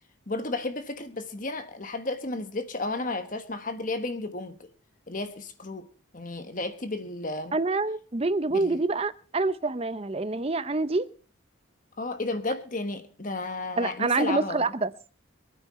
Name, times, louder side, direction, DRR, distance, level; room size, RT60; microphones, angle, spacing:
voice 1, 0.3-4.7 5.1-5.9 6.1-7.5 8.5-8.8 12.0-14.7, left 2 dB, 40° left, 9 dB, 1.2 m, -33 dB
voice 2, 7.5-11.1 13.8-14.9, right 3 dB, 30° right, 14 dB, 0.6 m, -26 dB
25.0 x 9.1 x 4.2 m, 0.37 s
head